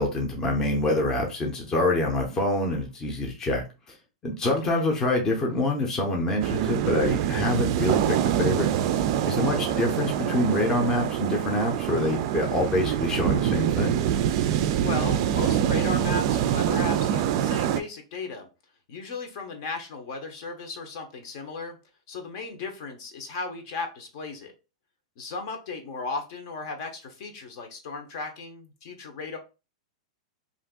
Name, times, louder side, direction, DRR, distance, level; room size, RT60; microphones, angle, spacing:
voice 1, 0.0-3.6 4.2-8.7 9.3-14.0, left 1 dB, 15° left, 1 dB, 0.6 m, -26 dB
voice 2, 4.4-4.8 9.4-9.9 14.8-18.5 18.9-21.8 22.1-24.5 25.2-29.4, left 3 dB, 50° left, 4 dB, 0.8 m, -36 dB
sound 1, 6.4-17.8, right 10 dB, 45° right, 0.3 m, -25 dB
2.5 x 2.5 x 3.6 m, 0.30 s
supercardioid pair, 155°, 3 cm